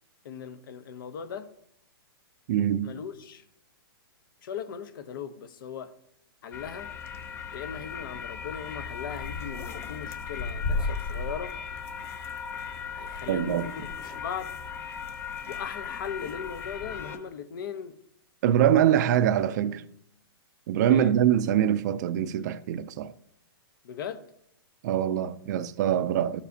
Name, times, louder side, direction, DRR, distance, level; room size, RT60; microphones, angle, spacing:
voice 1, 0.2-1.5 2.8-3.4 4.4-5.9 6.4-6.9 7.5-11.5 12.9-14.5 15.5-18.0 19.4-19.5 20.9-21.1 23.8-24.2, left 7 dB, 60° left, 1.0 m, -38 dB
voice 2, 2.5-2.9 13.3-13.7 18.4-19.8 20.7-23.1 24.8-26.4, right 10 dB, 45° right, 0.5 m, -24 dB
sound 1, 6.5-17.2, left 5 dB, 20° left, 0.6 m, -36 dB
13.0 x 7.1 x 2.8 m
hypercardioid pair, 155°, 13 cm